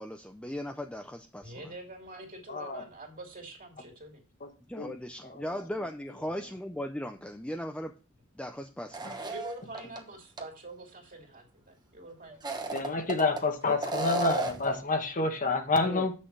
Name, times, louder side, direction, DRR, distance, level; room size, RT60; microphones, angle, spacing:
voice 1, 0.0-1.7 4.7-7.9 8.4-9.3 15.9-16.1, left 1 dB, 5° left, 0.5 m, -38 dB
voice 2, 1.4-4.2 6.2-6.4 9.3-12.4, right 2 dB, 40° right, 2.7 m, -45 dB
voice 3, 2.5-2.8 4.4-4.5 4.8-4.9 5.2-5.4 12.7-16.1, left 3 dB, 40° left, 1.2 m, -28 dB
sound 1, 8.9-10.0 10.4-10.5 12.3-13.4 13.8-14.7, right 3 dB, 20° right, 1.1 m, -33 dB
7.9 x 6.4 x 4.6 m
head